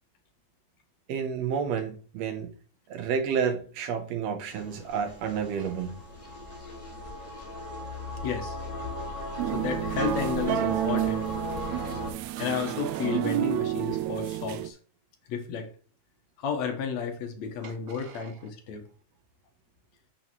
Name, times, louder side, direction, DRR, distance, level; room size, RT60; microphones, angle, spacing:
voice 1, 1.1-2.5 2.9-6.0 11.5-11.9 17.6-18.3, right 7 dB, 65° right, 1.8 m, -31 dB
sound 1, 4.5-12.1, left 1 dB, 25° left, 1.4 m, -37 dB
voice 2, 8.2-8.6 9.5-11.3 12.4-14.8 15.3-15.7 16.4-18.8, left 7 dB, 65° left, 2.1 m, -32 dB
sound 2, 9.4-14.7, right 13 dB, 90° right, 1.5 m, -30 dB
8.9 x 5.3 x 3.0 m
omnidirectional pair, 3.7 m